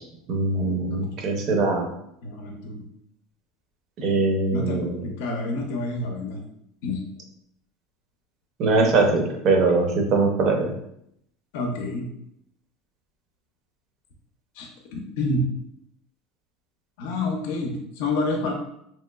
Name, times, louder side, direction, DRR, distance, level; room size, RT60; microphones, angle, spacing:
voice 1, 0.3-1.9 4.0-5.0 8.6-10.7, right 3 dB, 40° right, 2 dB, 0.6 m, -22 dB
voice 2, 2.2-2.8 4.5-4.8 5.2-6.4 6.8-7.0 8.8-8.9 11.5-12.1 14.6-15.5 17.0-18.5, left 2 dB, 75° left, 2 dB, 0.5 m, -28 dB
3.0 x 2.9 x 2.3 m, 0.74 s
supercardioid pair, 155°, 0 cm